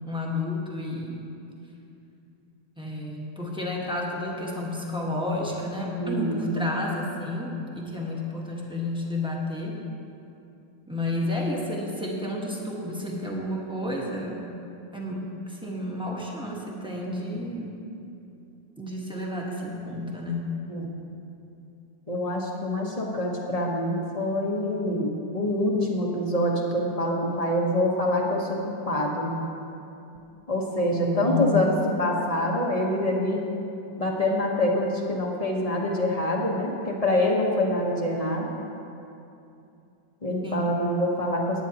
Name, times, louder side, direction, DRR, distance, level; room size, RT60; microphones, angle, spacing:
voice 1, 0.0-1.2 2.8-9.8 10.9-14.4 14.9-17.7 18.8-20.5 30.9-31.6 40.4-40.8, left 2 dB, 5° right, -3 dB, 1.1 m, -31 dB
voice 2, 6.0-6.6 20.7-20.9 22.1-28.6 28.9-29.3 30.5-33.4 34.0-38.5 40.2-41.6, left 1 dB, 25° left, -1 dB, 0.9 m, -25 dB
18.5 x 9.0 x 2.9 m, 2.7 s
omnidirectional pair, 2.0 m